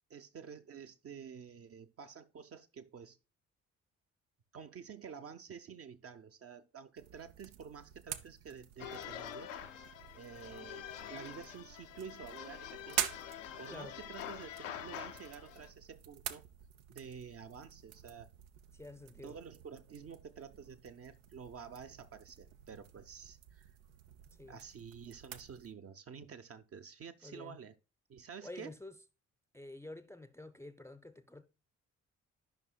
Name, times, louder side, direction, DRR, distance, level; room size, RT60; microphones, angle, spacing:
voice 1, 0.1-3.2 4.5-9.5 10.1-13.0 13.6-16.4 16.9-18.3 19.2-23.7 24.5-27.7 28.1-28.7, right 6 dB, 40° right, 0.7 m, -50 dB
sound 1, 7.0-25.7, right 11 dB, 70° right, 0.6 m, -47 dB
sound 2, 8.8-15.7, left 10 dB, 80° left, 0.7 m, -46 dB
voice 2, 18.7-19.4 24.3-24.6 27.2-27.6 28.2-29.0 29.5-31.4, left 2 dB, 5° left, 0.6 m, -49 dB
12.5 x 5.5 x 2.2 m
figure-of-eight pair, 40°, 38 cm